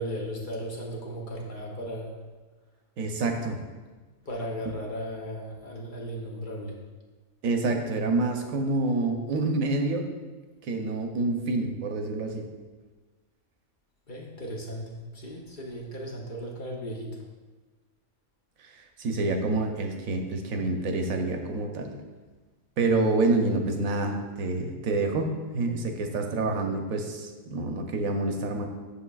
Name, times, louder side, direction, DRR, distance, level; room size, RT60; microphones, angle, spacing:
voice 1, 0.0-2.2 4.3-6.8 14.1-17.2, equal, 45° left, -2 dB, 0.9 m, -36 dB
voice 2, 3.0-3.6 7.4-10.0 10.6-12.4 18.6-18.7 19.0-21.9 22.8-28.6, right 2 dB, 85° right, 4 dB, 1.1 m, -27 dB
7.1 x 6.4 x 2.3 m, 1.3 s
omnidirectional pair, 1.4 m